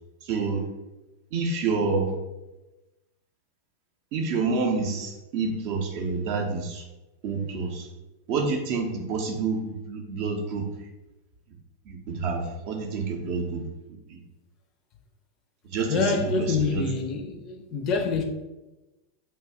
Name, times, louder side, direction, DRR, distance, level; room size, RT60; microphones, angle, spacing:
voice 1, 0.2-0.6 1.3-2.1 4.1-6.8 7.2-7.9 8.3-10.6 11.9-13.6 14.1-14.2 15.6-16.0 16.4-16.8, right 4 dB, 45° right, 0.5 m, -28 dB
voice 2, 15.9-18.2, left 4 dB, 35° left, 0.4 m, -26 dB
2.7 x 2.3 x 3.3 m
figure-of-eight pair, 90°, 0 cm